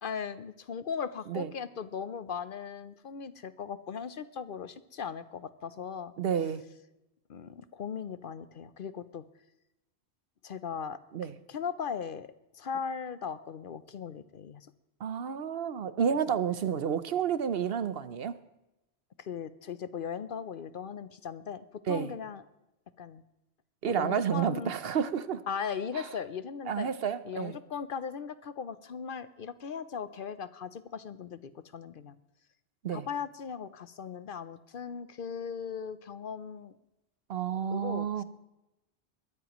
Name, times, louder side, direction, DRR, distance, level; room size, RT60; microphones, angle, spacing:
voice 1, 0.0-6.1 7.3-9.2 10.4-12.3 12.5-14.7 19.2-22.4 23.0-23.2 23.8-24.7 25.5-26.9 27.2-32.2 32.9-36.7 37.7-38.2, left 7 dB, 60° left, 14 dB, 0.8 m, -38 dB
voice 2, 6.2-6.6 11.1-11.3 15.0-18.4 21.9-22.1 23.8-25.4 25.9-26.1 26.7-27.6 32.8-33.1 37.3-38.2, right 8 dB, 65° right, 13 dB, 0.9 m, -30 dB
21.5 x 14.5 x 3.0 m, 0.92 s
omnidirectional pair, 1.1 m